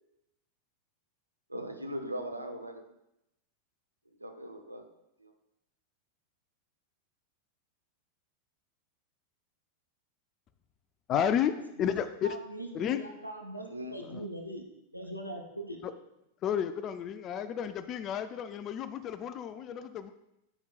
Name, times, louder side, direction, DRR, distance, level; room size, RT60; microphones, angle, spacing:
voice 1, 1.5-2.8 4.2-4.9 5.2-5.3 13.7-14.0, equal, 85° right, 5 dB, 0.6 m, -39 dB
voice 2, 11.1-12.4 12.7-13.0 14.0-14.3 15.8-15.9 16.4-20.1, left 9 dB, 30° left, 12 dB, 0.3 m, -32 dB
voice 3, 12.2-14.6 14.9-15.8, right 1 dB, 90° left, 3 dB, 0.7 m, -41 dB
10.0 x 5.3 x 2.3 m, 0.86 s
figure-of-eight pair, 90°, 0 cm